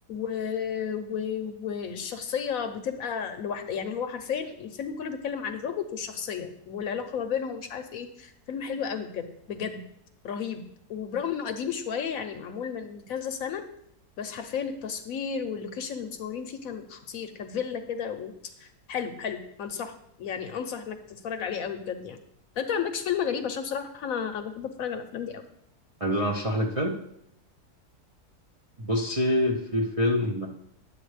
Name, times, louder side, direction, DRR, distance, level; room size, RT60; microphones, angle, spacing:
voice 1, 0.1-9.8 10.2-10.6 10.9-13.6 14.2-18.3 18.6-19.9 20.2-22.2 22.6-25.4, left 7 dB, 65° left, 7 dB, 1.0 m, -32 dB
voice 2, 26.0-27.0 28.8-30.5, left 1 dB, 35° right, -3 dB, 0.6 m, -26 dB
10.0 x 7.6 x 3.2 m, 0.73 s
omnidirectional pair, 1.7 m